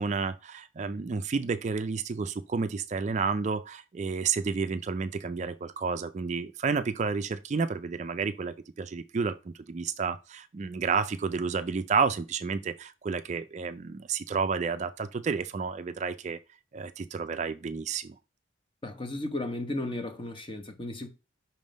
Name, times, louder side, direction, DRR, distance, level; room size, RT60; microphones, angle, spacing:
voice 1, 0.0-16.4 16.7-18.1, right 5 dB, 35° right, 0.3 m, -31 dB
voice 2, 18.8-21.1, left 2 dB, 25° left, 0.9 m, -34 dB
5.7 x 3.7 x 5.1 m
head